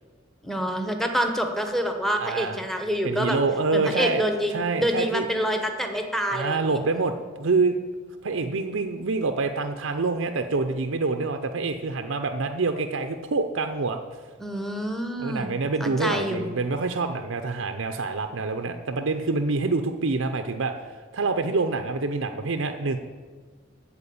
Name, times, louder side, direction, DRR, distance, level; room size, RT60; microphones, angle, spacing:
voice 1, 0.4-3.4 3.7-6.6 14.4-16.5, equal, ahead, 4 dB, 1.0 m, -27 dB
voice 2, 2.2-2.6 3.0-4.2 4.5-5.3 6.3-7.8 8.2-14.0 15.2-20.7 21.1-23.0, right 3 dB, 70° right, 6 dB, 0.7 m, -26 dB
14.0 x 4.7 x 8.5 m, 1.5 s
head